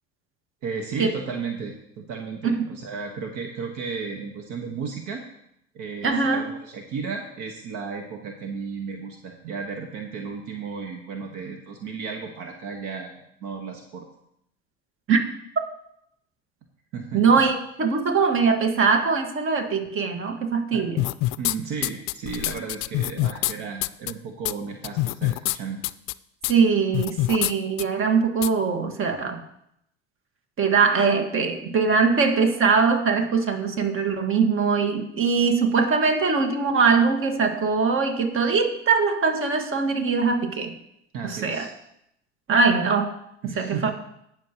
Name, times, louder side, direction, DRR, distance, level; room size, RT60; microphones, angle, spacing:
voice 1, 0.6-5.2 5.7-13.1 13.4-14.0 16.9-17.2 20.7-20.8 21.4-25.8 41.1-41.7 43.4-43.9, right 5 dB, 60° right, 3 dB, 1.5 m, -34 dB
voice 2, 6.0-6.5 15.1-15.2 17.1-21.0 26.5-29.4 30.6-40.7 41.2-41.7 42.5-43.1 43.4-43.9, right 5 dB, 40° right, 5 dB, 1.7 m, -22 dB
sound 1, 21.0-21.5 21.8-23.5 23.8-24.1 24.4-24.5 24.8-25.6 25.8-26.1 26.4-26.5 26.9-27.5 27.8-27.9 28.4-28.5, left 19 dB, 60° left, 0.4 m, -25 dB
18.0 x 6.6 x 3.0 m, 0.75 s
hypercardioid pair, 75°, 33 cm